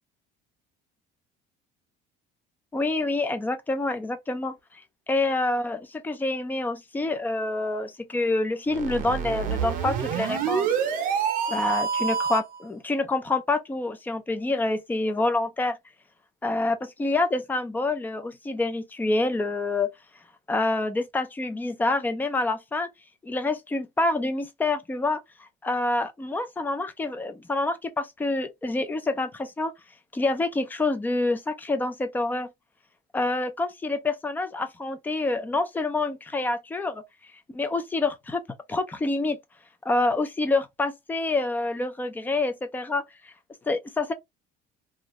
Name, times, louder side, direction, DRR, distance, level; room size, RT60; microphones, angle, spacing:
voice 1, 2.7-10.7 11.5-15.8 16.4-19.9 20.5-22.9 23.2-29.7 30.1-32.5 33.1-37.0 37.5-38.4 38.7-39.4 39.8-43.3 43.7-44.1, left 2 dB, 10° left, 0.4 m, -27 dB
sound 1, 8.7-12.6, right 7 dB, 50° right, 0.7 m, -27 dB
2.6 x 2.4 x 3.0 m
cardioid pair, 170°, 19 cm